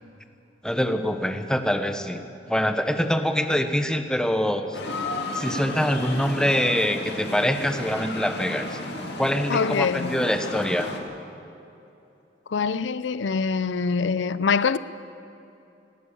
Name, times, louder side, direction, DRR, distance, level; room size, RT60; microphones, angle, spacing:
voice 1, 0.6-2.2 2.5-4.8 5.3-8.8 9.2-10.9, equal, 5° left, 1.0 m, -24 dB
sound 1, 4.7-11.0, left 2 dB, 65° left, 2.4 m, -33 dB
voice 2, 9.5-10.2 12.5-14.8, left 5 dB, 85° left, 0.5 m, -24 dB
19.0 x 16.5 x 8.4 m
head